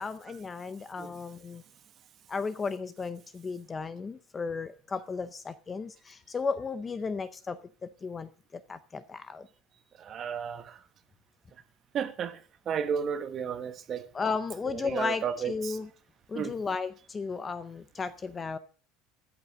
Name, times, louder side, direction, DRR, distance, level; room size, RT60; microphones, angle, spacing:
voice 1, 0.0-1.6 2.3-9.5 14.1-15.9 16.3-18.6, left 4 dB, 15° left, 0.6 m, -34 dB
voice 2, 10.0-10.8 11.9-12.4 12.7-14.1 14.6-15.8 16.3-16.6, right 7 dB, 30° right, 1.1 m, -33 dB
14.0 x 8.2 x 6.2 m
cardioid pair, 165°, 0 cm